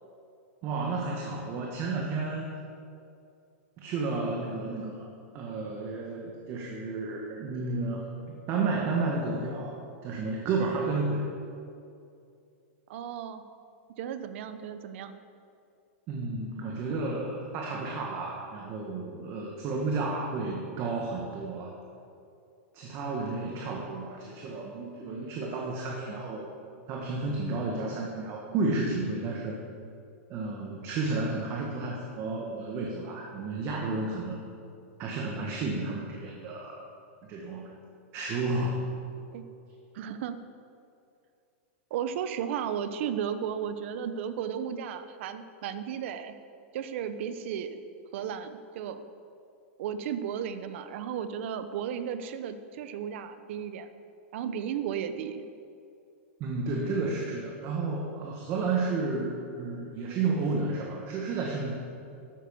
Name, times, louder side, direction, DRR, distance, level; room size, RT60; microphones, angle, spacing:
voice 1, 0.6-2.5 3.8-5.1 5.3-9.8 10.0-11.3 16.1-21.7 22.7-26.5 26.9-29.6 30.3-34.4 35.0-36.9 37.3-37.6 38.1-39.0 56.4-61.7, right 3 dB, 35° right, -1 dB, 1.7 m, -32 dB
voice 2, 12.9-13.4 14.0-15.1 39.3-39.4 39.9-40.4 41.9-46.3 46.7-47.8 48.1-49.0 49.8-53.9 54.3-55.4, right 8 dB, 60° right, 11 dB, 0.9 m, -34 dB
12.0 x 8.6 x 7.2 m, 2.5 s
hypercardioid pair, 140°, 8 cm